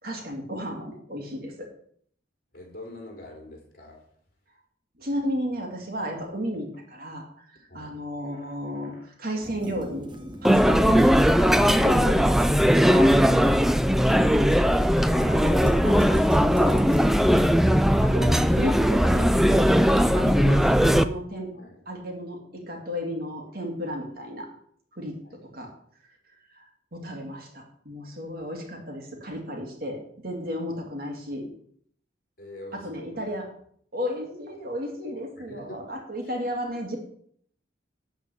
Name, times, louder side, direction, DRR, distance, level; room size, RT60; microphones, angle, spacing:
voice 1, 0.0-1.7 5.0-7.5 7.7-10.1 10.4-12.6 12.9-13.1 14.8-16.8 18.0-19.7 20.0-21.5 21.9-24.5 24.9-25.7 26.5-31.5 32.7-33.5 33.9-37.0, equal, 50° right, 1 dB, 2.4 m, -33 dB
voice 2, 2.5-4.0 7.7-7.9 8.3-8.5 8.9-9.0 21.5-21.8 25.2-25.3 32.4-33.1 35.5-35.8, left 1 dB, 50° left, 0 dB, 3.7 m, -44 dB
sound 1, 9.4-17.1, equal, 25° right, 1.0 m, -41 dB
sound 2, 10.4-21.0, equal, ahead, 0.3 m, -19 dB
11.5 x 4.5 x 8.3 m, 0.63 s
head